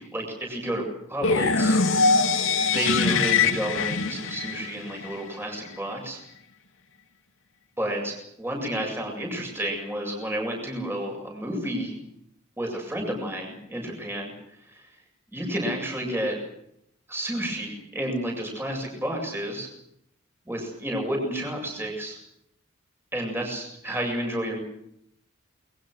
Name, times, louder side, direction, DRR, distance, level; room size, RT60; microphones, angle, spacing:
voice 1, 0.0-2.2 2.7-6.2 7.8-11.9 12.6-14.3 14.7-14.9 15.3-16.4 17.1-19.7 20.5-22.2 23.1-24.6, right 1 dB, 10° right, 1 dB, 7.8 m, -31 dB
sound 1, 1.2-5.2, left 4 dB, 85° left, 2.7 m, -23 dB
29.0 x 23.0 x 6.6 m, 0.75 s
head